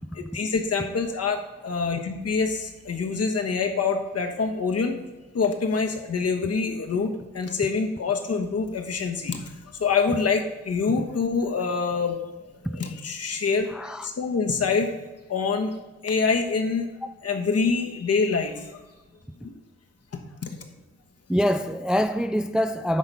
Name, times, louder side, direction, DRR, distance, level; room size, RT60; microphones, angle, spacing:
voice 1, 0.1-1.4 1.6-5.0 5.3-9.4 9.7-12.2 12.7-13.7 14.0-14.9 15.3-15.8 16.0-16.9 17.2-18.8 19.4-19.5 20.4-20.6, left 5 dB, 55° left, 1.3 m, -25 dB
voice 2, 13.7-14.1 21.3-23.0, equal, 5° right, 0.4 m, -24 dB
9.7 x 3.9 x 5.8 m
cardioid pair, 65°, 29 cm